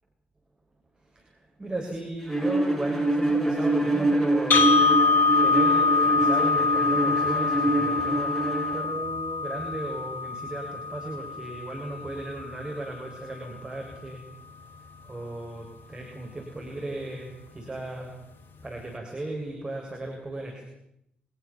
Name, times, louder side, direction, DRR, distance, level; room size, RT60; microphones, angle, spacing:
voice 1, 1.1-4.7 5.4-14.2 15.0-18.1 18.6-20.6, right 2 dB, 20° right, 0 dB, 7.4 m, -36 dB
Bowed string instrument, 2.3-8.9, right 1 dB, ahead, 7.6 m, -25 dB
sound 1, 4.5-12.5, left 4 dB, 50° left, 2.1 m, -24 dB
29.5 x 25.5 x 7.4 m, 0.80 s
figure-of-eight pair, 45°, 4 cm